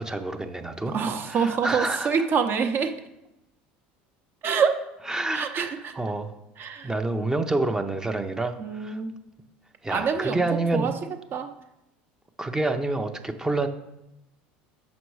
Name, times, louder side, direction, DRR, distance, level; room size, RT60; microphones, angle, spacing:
voice 1, 0.0-0.9 1.3-2.1 5.1-5.5 5.9-6.3 6.8-9.0 9.8-10.9 12.4-13.7, right 2 dB, 10° right, 7 dB, 0.6 m, -28 dB
voice 2, 0.9-3.0 4.4-4.8 5.3-5.9 6.6-6.9 8.6-9.2 9.9-10.9 11.3-11.5, right 6 dB, 45° right, 6 dB, 0.8 m, -26 dB
6.1 x 5.2 x 4.6 m, 0.90 s
supercardioid pair, 90°, 5 cm